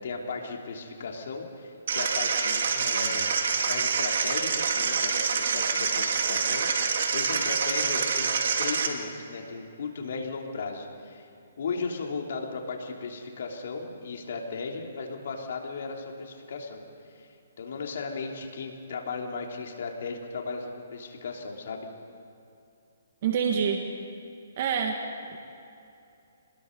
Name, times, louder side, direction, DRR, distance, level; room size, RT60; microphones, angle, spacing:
voice 1, 0.0-3.3 3.6-11.3 11.6-16.8 17.1-17.3 17.6-21.9, left 4 dB, 60° left, 1 dB, 3.2 m, -36 dB
sound 1, 1.9-8.9, right 5 dB, 60° right, 2.1 m, -26 dB
voice 2, 23.2-23.8 24.6-25.0 25.3-25.4, right 7 dB, 40° right, 2 dB, 1.8 m, -26 dB
26.0 x 20.5 x 5.4 m, 2.7 s
hypercardioid pair, 160°, 0 cm